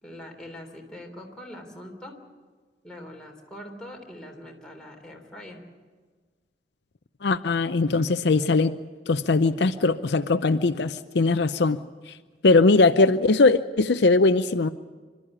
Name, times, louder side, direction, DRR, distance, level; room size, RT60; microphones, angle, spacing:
voice 1, 0.0-2.2 2.8-5.6, left 1 dB, 5° left, 0 dB, 3.5 m, -42 dB
voice 2, 7.2-8.7 9.1-11.8 12.4-14.7, left 3 dB, 70° left, 10 dB, 0.6 m, -20 dB
26.0 x 13.0 x 10.0 m, 1.4 s
head